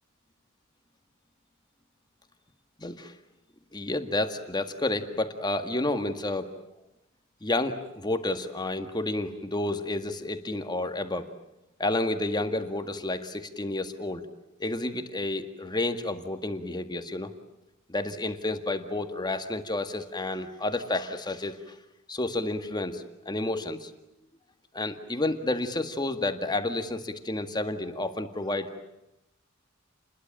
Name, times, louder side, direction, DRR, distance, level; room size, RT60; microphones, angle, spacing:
voice 1, 2.8-3.1 3.7-6.5 7.4-11.3 11.8-14.3 14.6-17.3 17.9-21.7 22.1-23.9 24.7-28.7, left 2 dB, 20° left, 8 dB, 1.8 m, -30 dB
29.5 x 21.5 x 9.0 m, 0.90 s
head